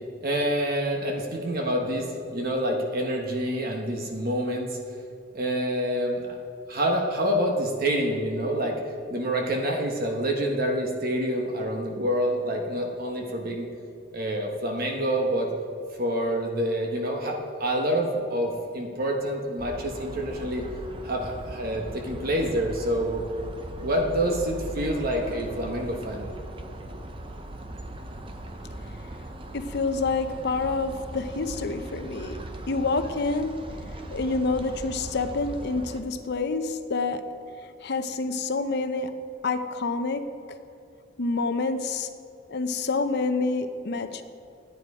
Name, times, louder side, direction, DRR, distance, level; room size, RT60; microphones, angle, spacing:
voice 1, 0.2-4.8 5.3-6.4 6.7-8.8 9.1-13.7 14.1-15.5 16.0-20.6 21.0-23.2 23.8-26.3, right 1 dB, 50° right, 1 dB, 1.2 m, -27 dB
sound 1, 19.6-36.0, right 1 dB, 25° right, 0.7 m, -39 dB
voice 2, 29.5-32.4 32.7-33.5 34.1-37.2 37.8-39.1 39.4-40.2 41.2-42.1 42.5-44.2, left 3 dB, 60° left, 8 dB, 0.7 m, -27 dB
11.5 x 9.6 x 4.9 m, 2.7 s
head